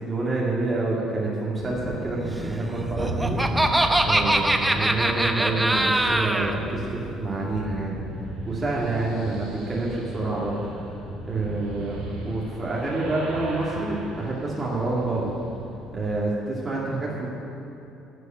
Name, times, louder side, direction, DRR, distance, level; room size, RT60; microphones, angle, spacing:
voice 1, 0.0-8.0 8.5-10.6 11.2-12.0 12.2-15.4 15.9-17.3, right 2 dB, 25° right, -6 dB, 2.4 m, -28 dB
sound 1, 1.6-16.1, right 1 dB, 75° right, 2.1 m, -36 dB
Laughter, 2.8-6.5, right 1 dB, 10° right, 0.9 m, -22 dB
11.5 x 6.3 x 9.3 m, 2.9 s
hypercardioid pair, 55°, 0 cm